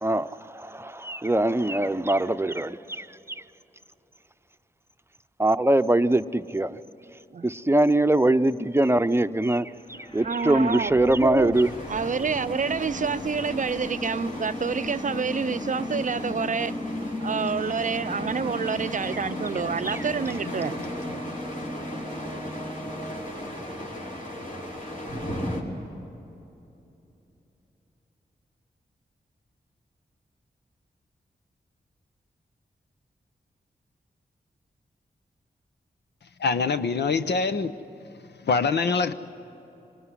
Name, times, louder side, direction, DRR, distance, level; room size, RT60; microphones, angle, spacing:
voice 1, 0.0-3.1 5.4-6.8 7.4-11.7, right 1 dB, 15° right, 0.8 m, -22 dB
sound 1, 9.8-23.8, left 2 dB, 35° left, 1.6 m, -37 dB
voice 2, 10.2-11.5 11.9-16.7 17.2-20.8, right 5 dB, 50° right, 0.5 m, -28 dB
sound 2, 11.5-25.6, equal, 50° left, 4.9 m, -37 dB
sound 3, 15.9-23.6, right 2 dB, 5° left, 1.5 m, -44 dB
voice 3, 36.4-37.7 38.4-39.1, left 4 dB, 80° left, 0.9 m, -24 dB
25.0 x 19.5 x 9.8 m
cardioid pair, 40°, 17 cm